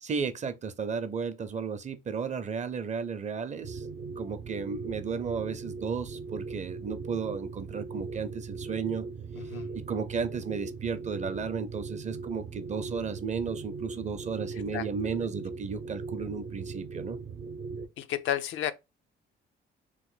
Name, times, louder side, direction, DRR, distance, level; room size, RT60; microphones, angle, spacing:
voice 1, 0.0-3.9 4.2-9.1 9.7-17.2, right 5 dB, 35° right, 0.5 m, -34 dB
sound 1, 3.6-17.9, right 4 dB, 70° right, 0.7 m, -39 dB
voice 2, 18.0-18.7, left 11 dB, 80° left, 0.4 m, -31 dB
3.0 x 2.1 x 3.8 m
cardioid pair, 90°, 20 cm